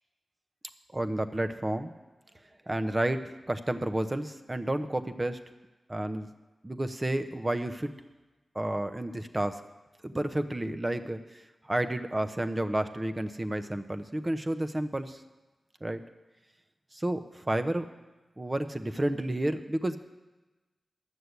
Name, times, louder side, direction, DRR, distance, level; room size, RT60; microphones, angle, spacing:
voice 1, 0.9-1.9 2.7-5.4 5.9-6.3 6.6-7.9 8.5-9.6 10.0-15.2 15.8-16.0 16.9-17.9 18.4-20.0, right 1 dB, 25° right, 8 dB, 0.9 m, -31 dB
11.5 x 6.7 x 8.0 m, 1.2 s
cardioid pair, 55°, 0 cm